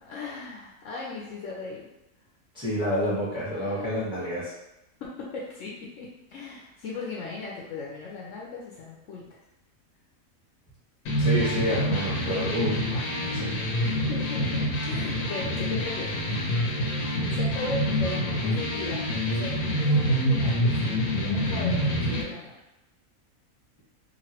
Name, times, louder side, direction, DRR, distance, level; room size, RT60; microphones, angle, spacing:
voice 1, 0.0-1.9 3.5-4.1 5.0-9.4 13.7-16.2 17.3-22.5, left 3 dB, 70° left, -3 dB, 0.9 m, -38 dB
voice 2, 2.5-4.5 11.2-14.0, equal, 5° right, -9 dB, 1.0 m, -29 dB
sound 1, 11.1-22.2, equal, 85° left, 1.2 m, -26 dB
3.0 x 2.5 x 2.9 m, 0.93 s
omnidirectional pair, 1.5 m